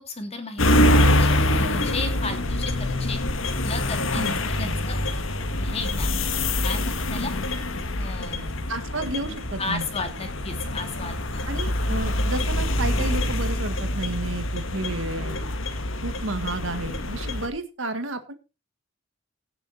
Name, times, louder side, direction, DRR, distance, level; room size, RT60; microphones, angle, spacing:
voice 1, 0.1-3.2 3.6-5.0 5.6-6.1 6.6-7.3 7.9-8.6 9.6-11.5, left 3 dB, 30° left, 5 dB, 2.9 m, -34 dB
sound 1, 0.6-17.5, left 1 dB, 80° left, 1.6 m, -25 dB
voice 2, 4.1-4.8 8.7-9.9 11.5-15.4 16.0-18.3, right 2 dB, 75° right, 9 dB, 1.8 m, -31 dB
17.0 x 7.0 x 4.3 m, 0.30 s
head